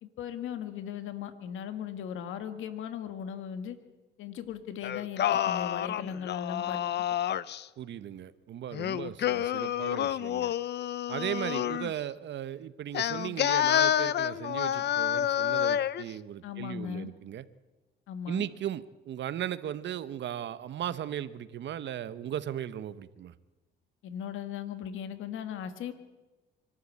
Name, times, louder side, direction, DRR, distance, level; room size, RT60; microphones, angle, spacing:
voice 1, 0.0-3.8 4.2-6.8 16.4-17.1 18.1-18.5 24.0-25.9, left 8 dB, 85° left, 10 dB, 1.7 m, -38 dB
Singing, 4.8-7.6 8.7-11.9 12.9-16.0, left 11 dB, 60° left, 0.6 m, -29 dB
voice 2, 7.8-10.5 11.1-17.4 18.3-23.3, right 10 dB, 65° right, 14 dB, 1.0 m, -37 dB
24.5 x 12.5 x 8.6 m, 1.2 s
cardioid pair, 90°, 20 cm